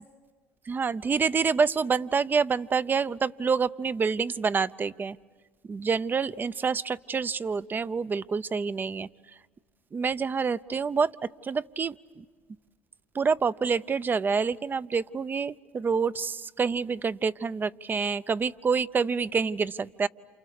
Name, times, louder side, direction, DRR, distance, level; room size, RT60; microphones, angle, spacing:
voice 1, 0.7-5.2 5.7-9.1 9.9-11.1 11.4-12.2 13.1-20.1, right 5 dB, 30° right, 16 dB, 0.7 m, -27 dB
29.0 x 28.5 x 6.6 m, 1.5 s
supercardioid pair, 75°, 6 cm